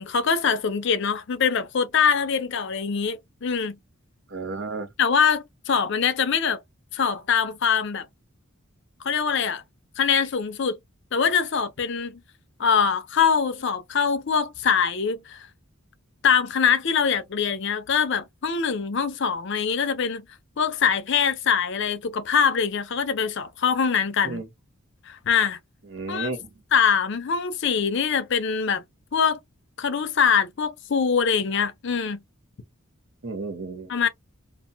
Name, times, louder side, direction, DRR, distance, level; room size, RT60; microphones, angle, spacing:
voice 1, 0.0-3.8 5.0-6.6 6.9-8.1 9.0-9.6 10.0-10.8 11.1-12.2 12.6-15.5 16.2-20.2 20.6-24.4 25.1-25.6 26.1-26.3 26.7-28.8 29.1-29.4 29.8-32.2 33.9-34.1, left 6 dB, 55° left, 0.5 m, -23 dB
voice 2, 4.3-4.9 24.2-24.5 25.9-26.5 33.2-33.9, right 3 dB, 60° right, 0.8 m, -32 dB
2.5 x 2.2 x 2.6 m
head